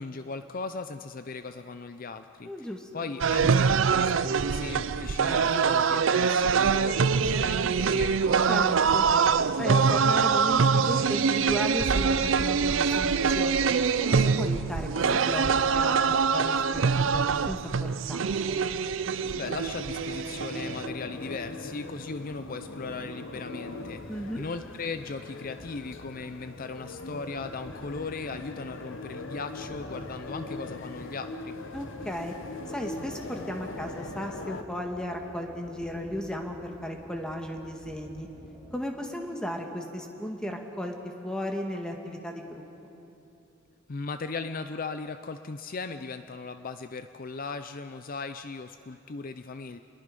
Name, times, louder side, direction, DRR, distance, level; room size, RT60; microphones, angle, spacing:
voice 1, 0.0-2.7 2.9-8.2 19.4-24.0 24.4-31.6 43.9-49.8, left 4 dB, 45° left, 9 dB, 0.5 m, -38 dB
voice 2, 2.4-3.1 8.5-9.0 9.6-13.6 14.0-15.5 15.7-18.6 24.1-24.4 31.7-32.3 32.7-38.3 38.7-42.6, equal, 5° left, 2 dB, 1.8 m, -35 dB
sound 1, 3.2-20.9, right 5 dB, 75° right, 0.5 m, -24 dB
sound 2, 18.8-34.6, left 2 dB, 75° left, 1.1 m, -41 dB
sound 3, 23.8-38.8, equal, 15° right, 2.5 m, -51 dB
29.5 x 21.5 x 5.3 m, 2.9 s
head